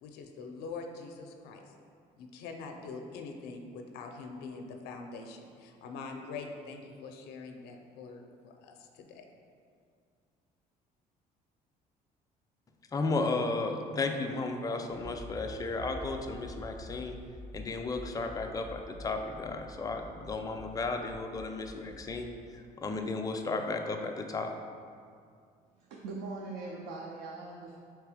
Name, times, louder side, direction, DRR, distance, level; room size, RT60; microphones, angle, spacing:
voice 1, 0.0-1.7 2.2-9.3, left 4 dB, 80° left, 4 dB, 0.5 m, -44 dB
voice 2, 12.9-17.2 17.5-24.5, left 3 dB, 20° left, 4 dB, 0.4 m, -34 dB
Accelerating revving vroom, 14.9-22.2, equal, 60° right, 1.1 m, -47 dB
voice 3, 25.8-27.8, right 3 dB, 90° right, -1 dB, 0.5 m, -41 dB
3.4 x 3.3 x 4.8 m, 2.2 s
cardioid pair, 95°, 17 cm